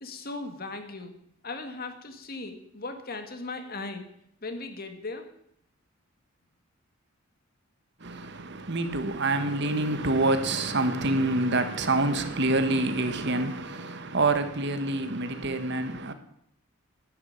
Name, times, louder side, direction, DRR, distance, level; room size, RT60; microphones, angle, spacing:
voice 1, 0.0-1.2 1.4-4.1 4.4-5.3, left 3 dB, 45° left, 1.9 m, -38 dB
voice 2, 8.0-16.1, right 2 dB, 55° right, 1.4 m, -27 dB
11.0 x 10.0 x 8.8 m
head